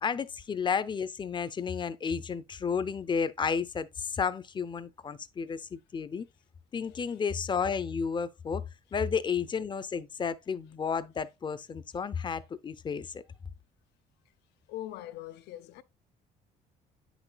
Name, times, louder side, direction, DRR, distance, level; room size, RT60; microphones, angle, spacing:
voice 1, 0.0-6.3 6.7-8.6 8.9-13.2, left 6 dB, 30° left, 0.5 m, -32 dB
voice 2, 6.8-7.2 14.7-15.8, left 13 dB, 80° left, 0.6 m, -42 dB
8.5 x 6.1 x 2.3 m
cardioid pair, 110°, 17 cm